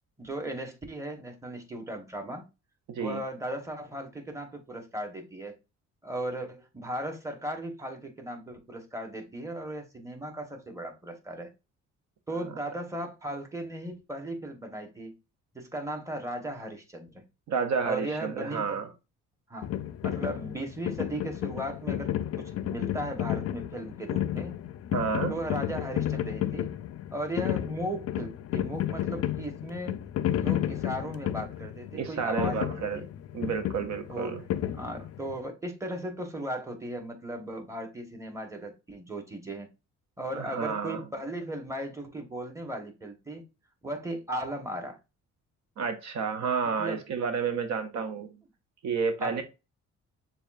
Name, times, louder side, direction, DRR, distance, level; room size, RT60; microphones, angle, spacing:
voice 1, 0.2-2.4 3.0-5.5 6.0-11.5 12.3-15.1 15.5-17.2 17.8-18.7 19.5-19.7 20.0-22.1 22.4-24.5 25.3-26.7 27.1-30.0 30.3-33.1 34.1-34.4 34.7-39.7 40.2-43.4 43.8-45.0 46.7-47.0 49.2-49.4, right 1 dB, 10° right, 1.1 m, -36 dB
voice 2, 2.9-3.2 17.5-18.9 24.9-25.3 31.9-33.0 33.3-34.4 40.3-41.0 45.8-48.3 48.8-49.4, right 5 dB, 65° right, 0.6 m, -30 dB
sound 1, 19.6-35.4, left 12 dB, 55° left, 0.4 m, -32 dB
6.7 x 2.4 x 2.4 m
cardioid pair, 90°, 30 cm